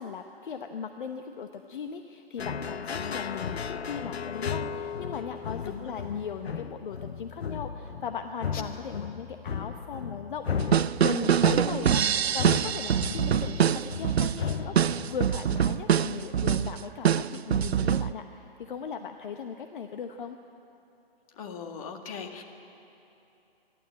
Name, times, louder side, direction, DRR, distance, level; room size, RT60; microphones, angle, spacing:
voice 1, 0.0-10.7 11.0-20.4, left 6 dB, 55° left, 6 dB, 1.0 m, -38 dB
sound 1, 2.4-15.5, left 6 dB, 90° left, 0.8 m, -35 dB
sound 2, 10.6-18.1, right 9 dB, 90° right, 0.5 m, -24 dB
voice 2, 21.3-22.4, left 6 dB, 35° left, 4 dB, 1.9 m, -39 dB
27.0 x 12.5 x 8.7 m, 2.9 s
hypercardioid pair, 145°, 31 cm